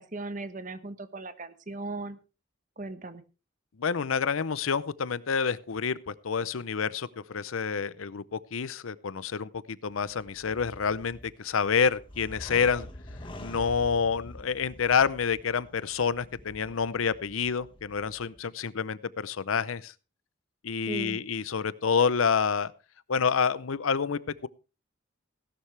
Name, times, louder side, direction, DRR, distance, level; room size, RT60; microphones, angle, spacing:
voice 1, 0.0-2.2 2.8-3.2 20.9-21.2, right 2 dB, 40° right, 11 dB, 1.1 m, -37 dB
voice 2, 3.8-12.9 13.4-19.9 20.6-22.7 23.1-24.5, left 6 dB, 85° left, 18 dB, 0.6 m, -28 dB
sound 1, 9.9-18.4, left 1 dB, 25° left, 1.5 m, -46 dB
16.0 x 11.5 x 3.3 m, 0.31 s
head